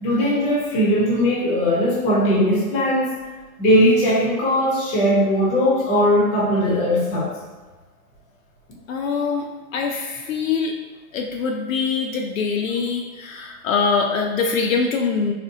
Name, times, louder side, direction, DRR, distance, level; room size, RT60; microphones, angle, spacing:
voice 1, 0.0-3.1 3.6-7.3, equal, 15° left, -6 dB, 0.6 m, -19 dB
voice 2, 8.9-9.5 9.7-10.7 11.1-15.3, left 5 dB, 60° left, 1 dB, 0.5 m, -23 dB
4.1 x 2.1 x 2.6 m, 1.3 s
hypercardioid pair, 140°, 46 cm